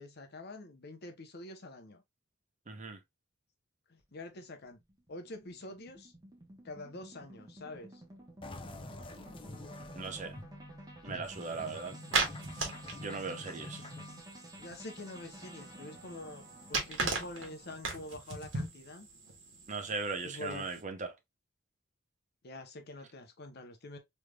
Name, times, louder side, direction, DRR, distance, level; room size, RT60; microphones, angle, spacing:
voice 1, 0.0-2.0 3.9-4.8 5.1-6.1 6.6-8.0 12.1-12.2 14.6-19.1 20.2-20.7 22.4-24.0, left 2 dB, 55° left, 0.8 m, -46 dB
voice 2, 2.7-3.0 10.0-10.4 11.0-12.0 13.0-13.8 19.7-21.1, right 4 dB, 40° right, 0.7 m, -38 dB
sound 1, 4.0-18.2, right 1 dB, 20° right, 1.0 m, -53 dB
sound 2, 8.4-14.2, left 2 dB, 25° left, 0.5 m, -47 dB
sound 3, 11.2-20.8, right 3 dB, 85° right, 1.2 m, -39 dB
3.4 x 3.2 x 2.2 m
head